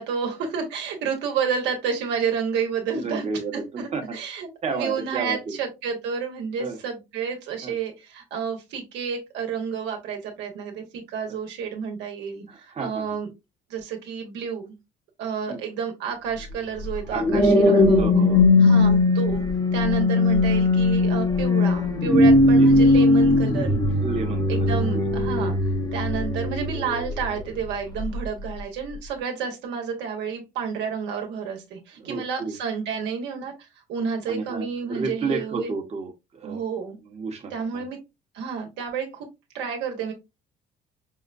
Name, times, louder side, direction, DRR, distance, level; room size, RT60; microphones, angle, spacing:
voice 1, 0.0-3.3 3.5-13.3 13.7-14.7 15.2-18.0 18.6-19.5 19.7-23.8 24.5-25.6 25.9-35.7 36.4-37.0 37.5-38.0 38.3-39.3 39.5-40.1, right 6 dB, 80° right, 3 dB, 1.2 m, -30 dB
voice 2, 2.9-4.0 4.6-5.6 6.6-6.8 7.6-7.7 12.5-13.0 15.5-15.6 17.1-18.5 22.6-22.7 24.0-24.7 24.9-25.1 32.0-32.5 34.3-36.6 37.1-37.8, right 4 dB, 40° right, 2 dB, 1.1 m, -31 dB
sound 1, 16.8-27.4 28.0-28.2, left 2 dB, 20° left, 0.9 m, -19 dB
5.6 x 2.1 x 2.5 m, 0.23 s
supercardioid pair, 85°, 18 cm